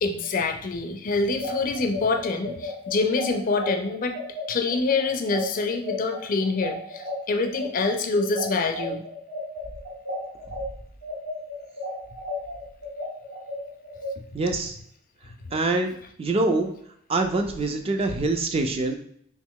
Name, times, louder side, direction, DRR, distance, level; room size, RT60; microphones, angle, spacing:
voice 1, 0.0-4.2 4.5-9.0, left 3 dB, 45° left, 5 dB, 0.4 m, -26 dB
sound 1, 1.2-10.6 11.0-14.1, left 2 dB, 75° right, 1.2 m, -34 dB
voice 2, 14.3-14.8 15.5-16.8 17.1-19.0, right 2 dB, 30° right, 5 dB, 0.3 m, -24 dB
3.1 x 2.8 x 3.6 m, 0.66 s
head